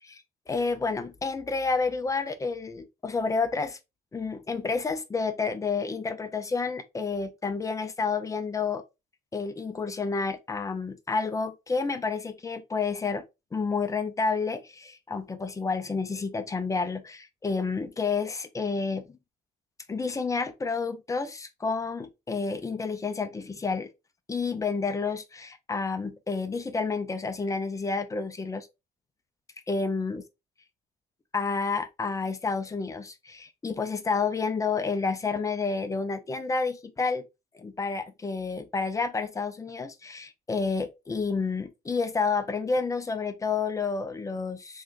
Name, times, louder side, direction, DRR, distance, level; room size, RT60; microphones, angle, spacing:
voice 1, 0.0-3.8 4.1-8.8 9.3-13.2 13.5-19.2 19.9-23.9 24.3-28.7 29.7-30.2 31.3-37.2 37.5-44.8, left 4 dB, 20° left, 0.6 m, -30 dB
3.6 x 3.1 x 2.5 m
cardioid pair, 110°, 17 cm